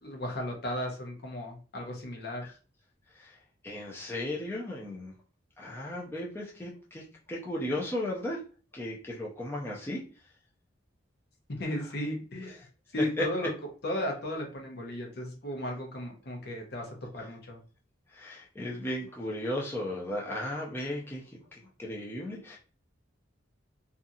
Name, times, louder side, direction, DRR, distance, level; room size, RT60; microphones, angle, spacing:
voice 1, 0.0-2.5 11.6-12.5 12.9-13.5 13.8-17.6, left 1 dB, 55° left, 2 dB, 0.8 m, -35 dB
voice 2, 3.6-5.1 5.6-8.4 8.7-10.0 11.7-11.8 13.2-13.3 18.1-22.6, left 1 dB, 10° left, -4 dB, 0.5 m, -35 dB
2.7 x 2.4 x 2.6 m, 0.36 s
head